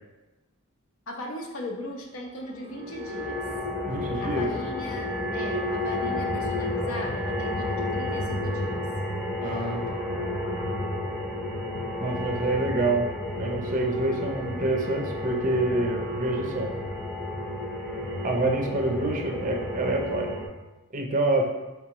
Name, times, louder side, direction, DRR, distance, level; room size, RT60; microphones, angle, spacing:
voice 1, 1.1-3.4 4.2-8.8, left 1 dB, 65° left, 1 dB, 0.7 m, -38 dB
sound 1, 2.6-20.5, left 1 dB, 5° left, 0.6 m, -31 dB
voice 2, 3.9-4.5 9.4-10.0 12.0-13.1 13.3-16.7 18.2-20.3 20.9-21.5, right 2 dB, 35° right, 2 dB, 0.5 m, -27 dB
4.6 x 3.4 x 2.9 m, 1.1 s
head